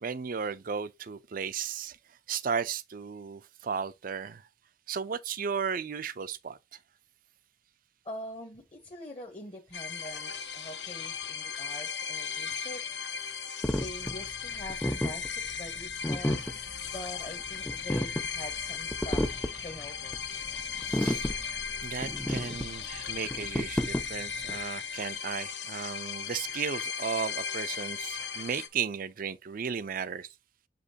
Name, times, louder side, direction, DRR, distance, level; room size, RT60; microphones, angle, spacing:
voice 1, 0.0-4.5 4.9-6.8 20.8-21.3 21.8-30.3, right 6 dB, 50° right, 0.5 m, -35 dB
voice 2, 8.0-12.8 13.8-19.3 19.6-20.2, left 1 dB, 30° left, 1.0 m, -44 dB
sound 1, 9.7-28.7, left 6 dB, 65° left, 1.1 m, -37 dB
sound 2, 13.6-24.6, equal, 5° left, 0.4 m, -32 dB
7.0 x 5.1 x 2.8 m
head